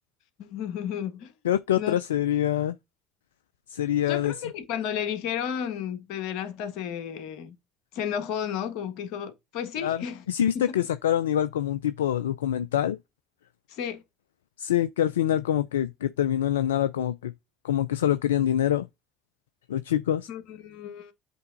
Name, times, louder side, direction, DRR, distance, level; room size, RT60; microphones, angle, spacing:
voice 1, 0.4-1.3 1.8-2.0 4.1-7.5 7.9-10.2 10.5-10.8 13.7-14.0 20.3-21.1, left 8 dB, 70° left, 1.4 m, -33 dB
voice 2, 1.4-2.8 3.7-4.3 9.8-13.0 14.6-17.3 17.6-18.9 19.7-20.3, left 11 dB, 90° left, 0.3 m, -25 dB
8.0 x 3.5 x 3.9 m
hypercardioid pair, 65°, 0 cm